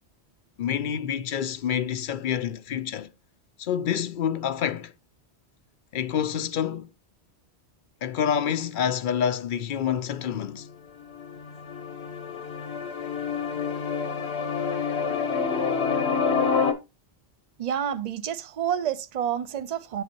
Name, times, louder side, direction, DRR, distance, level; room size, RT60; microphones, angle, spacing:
voice 1, 0.6-3.1 3.6-4.9 5.9-6.9 8.0-10.7, left 8 dB, 55° left, 0.6 m, -27 dB
sound 1, 10.4-10.7 11.0-16.7, left 5 dB, 70° left, 1.4 m, -27 dB
voice 2, 17.6-20.0, right 9 dB, 45° right, 0.6 m, -29 dB
8.0 x 6.2 x 2.9 m
omnidirectional pair, 1.1 m